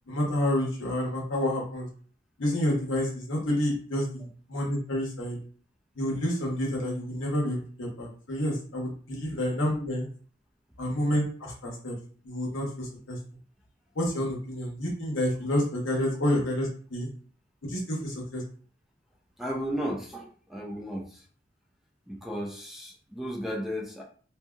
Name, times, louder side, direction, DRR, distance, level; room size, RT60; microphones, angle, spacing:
voice 1, 0.1-1.9 2.4-5.4 6.0-10.1 10.8-12.0 12.2-13.2 13.9-17.1 17.6-18.4, left 1 dB, 80° left, -1 dB, 1.0 m, -29 dB
voice 2, 19.4-21.0 22.1-24.0, equal, ahead, -1 dB, 0.4 m, -34 dB
2.7 x 2.7 x 2.3 m, 0.43 s
head